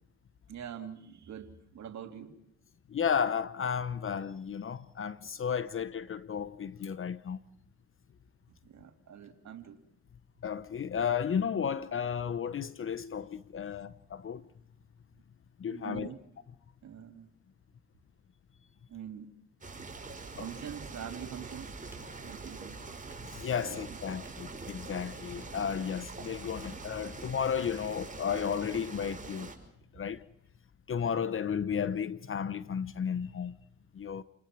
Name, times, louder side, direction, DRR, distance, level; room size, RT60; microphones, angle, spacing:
voice 1, 0.5-2.4 8.6-9.8 15.7-16.2 16.8-17.3 18.9-19.3 20.4-21.8 22.2-22.8 23.5-24.0, right 9 dB, 65° right, 3.0 m, -44 dB
voice 2, 2.9-7.4 10.4-14.4 15.6-16.1 20.4-20.5 23.2-29.5 29.9-30.2 30.9-33.6 33.9-34.2, left 7 dB, 45° left, 1.0 m, -33 dB
sound 1, 19.6-29.6, right 3 dB, 25° right, 5.6 m, -44 dB
sound 2, 21.9-22.7 23.1-23.7 24.2-24.9 25.4-25.9, right 2 dB, 10° right, 4.4 m, -58 dB
30.0 x 20.5 x 6.1 m
cardioid pair, 90°, 30 cm